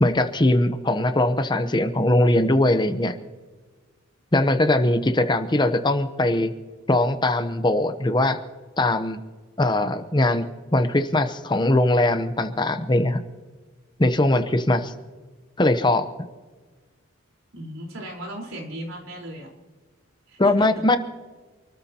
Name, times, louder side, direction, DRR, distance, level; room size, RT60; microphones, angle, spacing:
voice 1, 0.0-3.1 4.3-6.5 6.9-8.4 8.8-9.2 9.6-10.4 10.7-13.2 14.0-14.9 15.6-16.1 20.4-21.0, left 1 dB, 20° left, 9 dB, 0.8 m, -20 dB
voice 2, 17.5-19.5 20.3-20.7, equal, 85° right, -1 dB, 4.3 m, -36 dB
28.5 x 13.5 x 2.9 m, 1.4 s
head